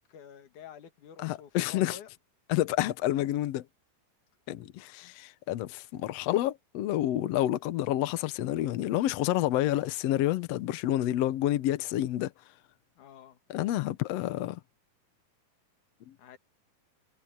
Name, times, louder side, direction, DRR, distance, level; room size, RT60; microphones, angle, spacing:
voice 1, 0.1-2.1 13.0-13.4 16.2-16.4, left 8 dB, 60° left, 3.0 m, -49 dB
voice 2, 1.2-2.0 2.5-3.6 4.5-12.3 13.5-14.6, left 14 dB, 90° left, 1.4 m, -29 dB
omnidirectional pair, 4.1 m